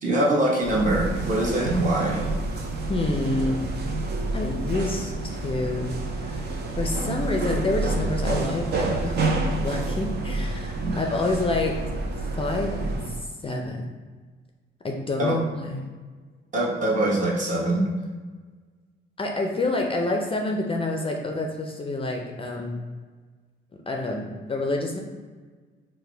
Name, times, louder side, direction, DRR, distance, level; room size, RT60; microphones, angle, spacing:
voice 1, 0.0-2.2 10.8-10.9 15.2-15.3 16.5-17.9, right 1 dB, 40° right, -4 dB, 1.1 m, -23 dB
sound 1, 0.6-13.2, right 2 dB, 55° right, 0.6 m, -28 dB
voice 2, 2.9-3.7 4.3-6.4 6.8-11.8 12.2-13.8 14.8-15.9 19.2-22.8 23.9-25.0, left 2 dB, 25° left, 1 dB, 0.5 m, -28 dB
4.6 x 2.1 x 3.3 m, 1.4 s
cardioid pair, 90°, 20 cm